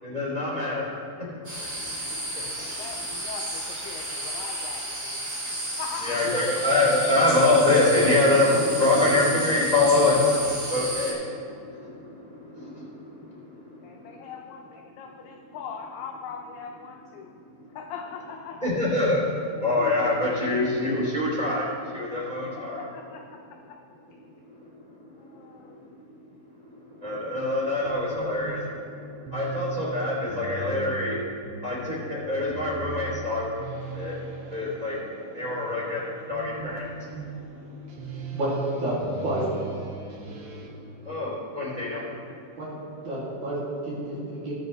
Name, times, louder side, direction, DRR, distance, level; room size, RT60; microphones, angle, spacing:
voice 1, 0.0-1.3 1.7-2.5 2.9-3.0 6.0-14.3 17.5-17.7 18.6-22.8 24.4-33.5 33.9-38.4 40.2-42.6, left 2 dB, 10° right, -7 dB, 2.3 m, -26 dB
sound 1, 1.4-11.1, right 1 dB, 30° right, 2.1 m, -32 dB
voice 2, 2.6-6.6 13.8-17.4 17.7-18.7 22.6-23.8 25.2-25.9, left 6 dB, 80° left, 2 dB, 2.3 m, -41 dB
sound 2, 27.9-40.7, right 5 dB, 75° right, 3.6 m, -39 dB
voice 3, 38.3-39.5 42.6-42.7 43.0-44.5, right 1 dB, 45° right, -8 dB, 3.5 m, -29 dB
21.0 x 7.6 x 3.2 m, 2.6 s
omnidirectional pair, 5.2 m